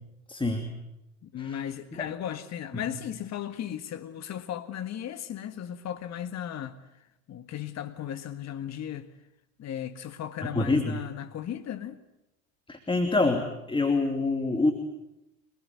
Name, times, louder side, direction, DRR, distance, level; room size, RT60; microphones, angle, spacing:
voice 1, 0.3-0.7 1.4-1.6 1.9-2.0 10.4-11.0 12.7-14.7, left 2 dB, 10° left, 2.8 m, -26 dB
voice 2, 1.2-6.8 7.3-9.1 9.6-12.0, left 10 dB, 40° left, 1.8 m, -36 dB
25.5 x 20.5 x 9.3 m
hypercardioid pair, 80°, 43 cm